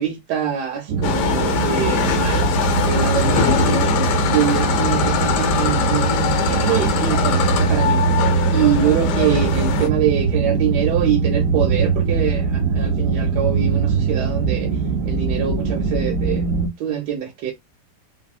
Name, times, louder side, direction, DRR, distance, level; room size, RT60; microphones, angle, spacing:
voice 1, 0.0-2.5 2.8-8.0 8.4-14.7 15.1-16.4 16.8-17.5, right 9 dB, 85° right, 1.2 m, -24 dB
sound 1, 0.9-16.7, right 5 dB, 65° right, 0.8 m, -21 dB
sound 2, 1.0-9.9, left 9 dB, 85° left, 1.2 m, -22 dB
2.7 x 2.6 x 2.3 m
omnidirectional pair, 1.8 m